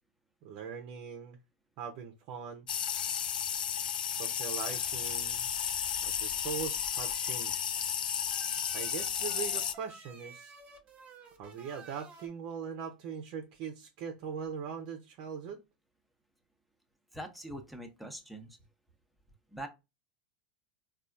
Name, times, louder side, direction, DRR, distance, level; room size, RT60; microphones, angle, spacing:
voice 1, 0.4-1.4 1.8-2.7 4.2-5.5 6.0-7.7 8.7-10.5 11.4-15.6, right 7 dB, 55° right, 0.6 m, -41 dB
sound 1, 2.7-9.7, left 8 dB, 80° left, 0.3 m, -33 dB
sound 2, 4.6-12.3, right 3 dB, 30° right, 1.1 m, -52 dB
voice 2, 17.1-18.6 19.5-19.7, right 1 dB, ahead, 0.8 m, -43 dB
4.1 x 2.4 x 2.4 m
hypercardioid pair, 95°, 5 cm